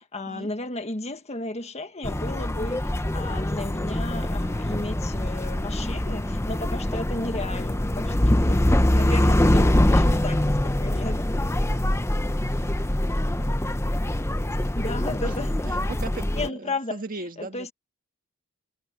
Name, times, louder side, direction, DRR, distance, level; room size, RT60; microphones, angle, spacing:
voice 1, 0.1-11.3 14.6-15.7 16.3-17.0 17.4-17.7, left 2 dB, 30° left, 1.6 m, -34 dB
sound 1, 2.0-16.5, left 1 dB, 15° left, 0.7 m, -24 dB
voice 2, 15.2-17.7, right 2 dB, 45° right, 1.9 m, -38 dB
head